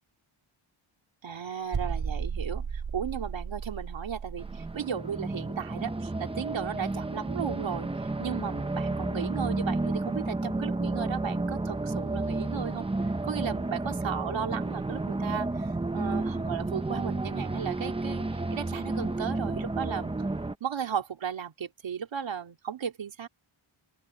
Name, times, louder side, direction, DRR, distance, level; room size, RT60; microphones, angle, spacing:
voice 1, 1.2-7.9 8.2-12.9 13.2-20.1 20.6-23.3, right 8 dB, 65° right, 2.6 m, -35 dB
sound 1, 1.7-4.8, right 6 dB, 45° right, 4.3 m, -34 dB
sound 2, 4.4-20.5, right 2 dB, 10° right, 0.8 m, -31 dB
open air
wide cardioid pair, 170°, 50 cm